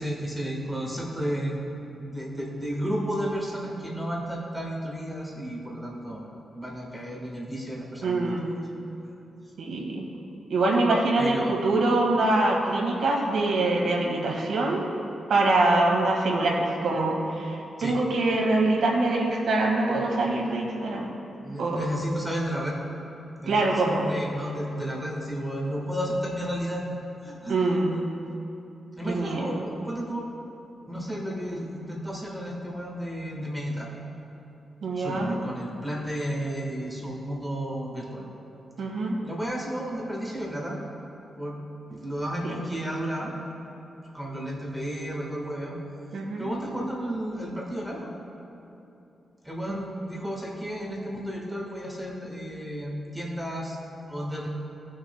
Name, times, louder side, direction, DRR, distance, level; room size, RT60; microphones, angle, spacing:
voice 1, 0.0-1.6 2.0-6.3 6.5-8.5 11.2-11.6 17.8-17.9 21.4-22.8 23.4-26.8 27.2-27.8 29.0-30.3 30.9-33.9 34.9-38.2 39.2-40.8 41.3-41.6 41.9-43.3 44.1-45.8 46.4-48.1 49.4-53.8 54.1-54.5, equal, 5° right, -3 dB, 1.4 m, -32 dB
voice 2, 8.0-8.4 9.6-10.1 10.5-14.8 15.3-21.1 21.6-21.8 23.5-24.1 27.5-27.9 29.1-29.6 34.8-35.4 38.8-39.2 42.4-42.5 46.1-46.5 49.7-49.8, right 2 dB, 80° right, -1 dB, 1.6 m, -24 dB
18.0 x 6.4 x 2.2 m, 2.9 s
wide cardioid pair, 120°, 0 cm